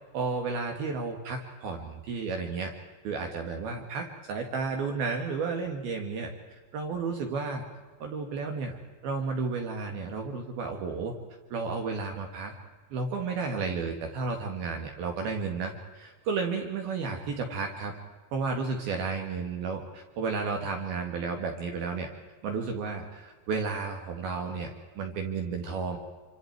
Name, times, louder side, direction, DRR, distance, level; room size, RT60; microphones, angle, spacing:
voice 1, 0.1-2.7 3.0-6.3 6.7-7.7 8.0-11.1 11.5-12.5 12.9-17.9 18.3-22.1 22.4-24.7 25.0-26.0, right 4 dB, 65° right, 3 dB, 3.4 m, -32 dB
27.5 x 26.0 x 4.7 m, 1.3 s
omnidirectional pair, 5.2 m